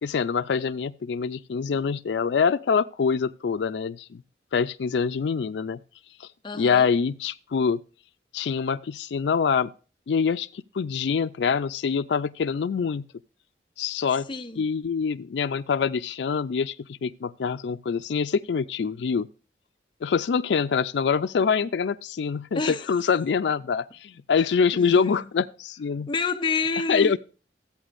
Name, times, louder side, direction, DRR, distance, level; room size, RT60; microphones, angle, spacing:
voice 1, 0.0-4.2 4.5-5.8 6.2-6.3 6.6-7.8 8.3-9.7 10.1-13.1 13.8-14.3 14.6-19.3 20.0-26.1 26.9-27.2, left 6 dB, 80° left, 0.4 m, -25 dB
voice 2, 6.4-6.9 14.3-14.6 22.5-23.0 24.7-25.3 26.1-27.2, left 4 dB, 25° left, 0.6 m, -29 dB
14.0 x 8.7 x 2.5 m
head